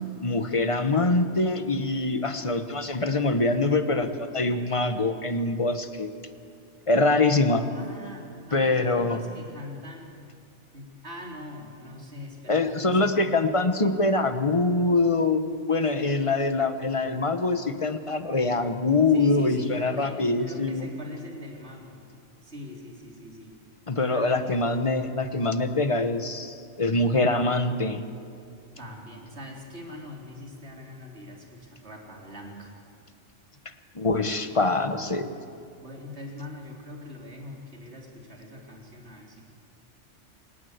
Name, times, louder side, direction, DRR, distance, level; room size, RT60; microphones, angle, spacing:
voice 1, 0.2-6.1 6.9-7.6 8.5-9.2 12.5-20.9 23.9-28.0 33.9-35.3, left 3 dB, 25° left, 9 dB, 1.2 m, -24 dB
voice 2, 7.7-10.1 10.7-13.3 15.9-16.1 19.1-22.0 22.4-23.6 24.1-24.5 28.8-32.7 35.7-39.4, left 1 dB, 60° right, 0 dB, 4.0 m, -42 dB
27.5 x 18.0 x 8.1 m, 2.5 s
omnidirectional pair, 1.3 m